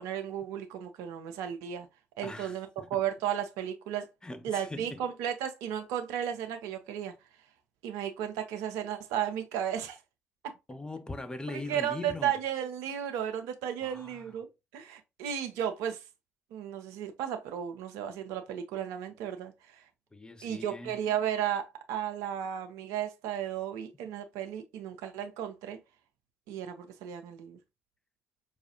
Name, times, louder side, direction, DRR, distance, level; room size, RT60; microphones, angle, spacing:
voice 1, 0.0-1.9 2.2-4.1 4.4-7.1 7.8-10.0 11.7-14.5 14.7-16.0 16.5-19.5 20.4-25.8 26.5-27.6, right 9 dB, 70° right, 0.5 m, -34 dB
voice 2, 2.2-3.0 4.2-5.0 10.7-12.3 13.8-14.3 20.1-21.0, left 2 dB, 15° left, 0.6 m, -41 dB
4.7 x 2.4 x 2.7 m
hypercardioid pair, 45°, 6 cm